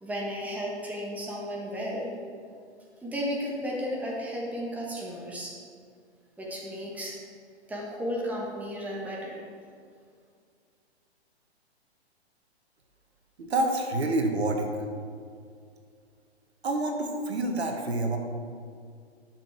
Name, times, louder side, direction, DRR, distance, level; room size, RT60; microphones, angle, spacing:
voice 1, 0.0-2.1 3.0-5.5 6.4-7.2 7.7-9.4, equal, 5° right, -3 dB, 1.3 m, -34 dB
voice 2, 13.4-14.7 16.6-18.2, right 2 dB, 65° right, 3 dB, 1.6 m, -27 dB
12.0 x 6.3 x 4.7 m, 2.2 s
figure-of-eight pair, 120°, 34 cm